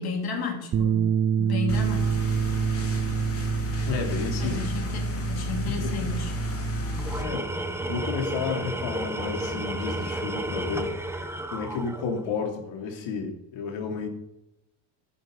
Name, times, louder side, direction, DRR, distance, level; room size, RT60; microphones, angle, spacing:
voice 1, 0.0-2.2 4.4-6.3, left 4 dB, 50° left, 3 dB, 3.1 m, -33 dB
Bass guitar, 0.7-7.0, right 7 dB, 30° right, 0.6 m, -28 dB
sound 1, 1.7-7.2, left 1 dB, 30° left, 2.8 m, -31 dB
voice 2, 3.9-4.7 5.6-6.1 7.2-7.6 7.9-10.9 11.5-14.1, left 5 dB, 65° left, 3 dB, 2.9 m, -31 dB
Tools, 7.0-12.3, right 1 dB, 5° right, 1.0 m, -32 dB
12.0 x 10.0 x 5.4 m, 0.86 s
cardioid pair, 130°, 49 cm